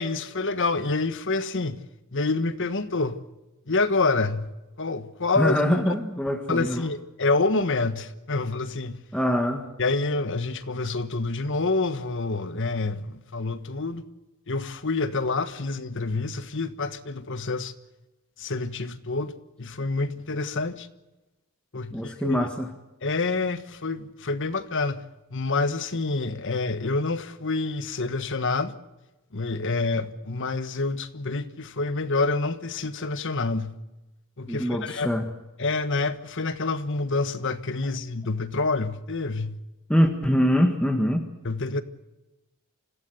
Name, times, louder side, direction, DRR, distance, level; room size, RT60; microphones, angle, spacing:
voice 1, 0.0-1.8 2.1-3.2 3.7-4.5 4.8-5.8 6.5-9.0 9.8-14.0 14.5-17.7 18.4-19.3 19.6-20.9 21.7-22.5 23.0-25.0 25.3-28.7 29.3-33.7 34.4-35.1 35.6-39.6 41.4-41.8, left 3 dB, 55° left, 1.4 m, -27 dB
voice 2, 5.4-6.8 9.1-9.7 21.9-22.7 34.5-35.3 39.9-41.3, equal, 5° left, 1.7 m, -24 dB
26.0 x 16.0 x 8.2 m
head